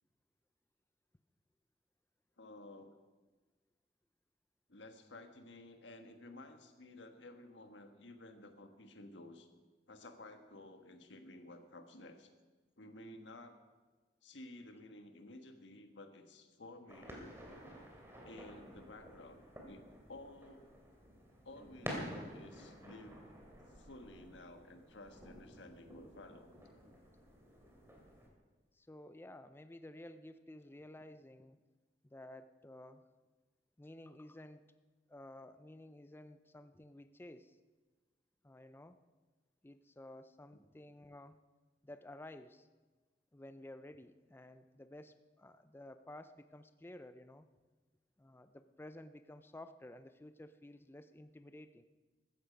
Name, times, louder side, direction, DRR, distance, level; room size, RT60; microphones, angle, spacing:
voice 1, 2.4-2.9 4.7-9.5 9.9-12.3 12.8-13.6 14.2-19.8 20.1-20.7 21.4-23.2 23.7-26.6 40.5-40.6, left 2 dB, 85° left, 7 dB, 1.4 m, -54 dB
sound 1, 16.9-28.3, equal, 15° right, 2.9 m, -50 dB
voice 2, 28.7-31.6 32.0-33.1 33.8-34.7 35.1-37.6 38.4-39.0 39.6-41.4 41.8-42.7 43.3-47.5 48.2-51.9, left 1 dB, 15° left, 11 dB, 0.5 m, -53 dB
15.0 x 13.5 x 5.2 m, 1.3 s
head